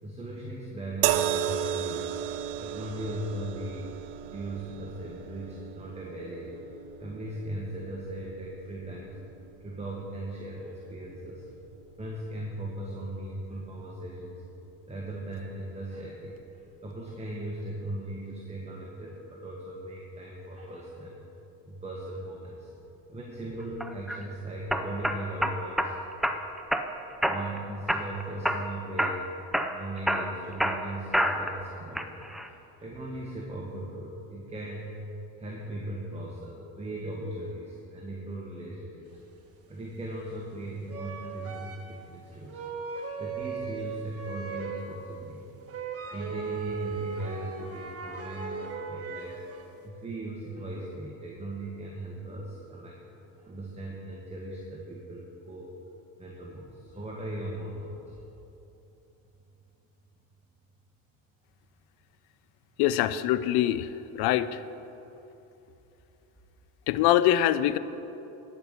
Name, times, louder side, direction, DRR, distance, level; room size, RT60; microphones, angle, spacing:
voice 1, 0.0-2.2 2.6-3.9 4.3-6.6 7.0-9.2 9.6-11.5 12.0-14.4 14.9-21.2 21.6-22.7 23.1-25.9 27.0-29.3 29.7-32.1 32.5-34.9 35.4-39.2 39.7-42.6 43.2-45.4 45.7-49.3 49.8-53.0 53.4-55.7 56.2-58.2, right 1 dB, 15° right, -2 dB, 1.5 m, -38 dB
sound 1, 1.0-14.4 15.3-15.5, right 10 dB, 85° right, 0.6 m, -36 dB
sound 2, 23.8-24.2 24.7-25.9 26.2-26.9 27.2-27.6 27.9-28.7 29.0-29.2 29.5-31.6 32.0-32.5, equal, ahead, 0.5 m, -27 dB
sound 3, 39.8-39.9 40.9-42.0 42.5-45.0 45.3-45.4 45.6-49.7, right 5 dB, 35° right, 1.4 m, -37 dB
voice 2, 62.8-63.9 64.1-64.6 66.9-67.8, left 12 dB, 65° left, 15 dB, 0.6 m, -23 dB
11.0 x 5.5 x 7.9 m, 3.0 s
supercardioid pair, 85°, 40 cm